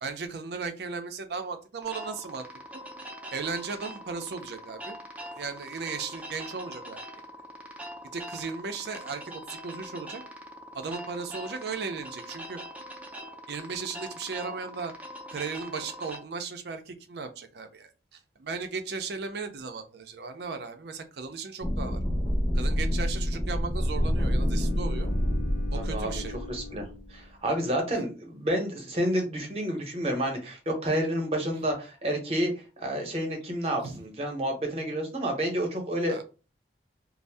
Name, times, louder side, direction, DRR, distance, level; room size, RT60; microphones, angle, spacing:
voice 1, 0.0-2.5 3.3-5.0 5.3-7.0 8.1-10.2 10.7-12.6 13.5-14.9 15.3-22.0 22.5-25.1 25.7-26.4 27.9-28.0 33.8-34.0 36.1-36.2, right 4 dB, 65° right, 7 dB, 0.5 m, -36 dB
sound 1, 1.8-16.2, equal, 10° right, 0.4 m, -43 dB
sound 2, 21.6-27.0, equal, 30° left, 0.7 m, -27 dB
Bowed string instrument, 23.8-27.9, left 6 dB, 80° left, 0.4 m, -45 dB
voice 2, 25.7-26.2 26.5-26.8 27.1-36.2, right 1 dB, 35° right, 2 dB, 0.7 m, -29 dB
2.6 x 2.0 x 3.2 m, 0.33 s
head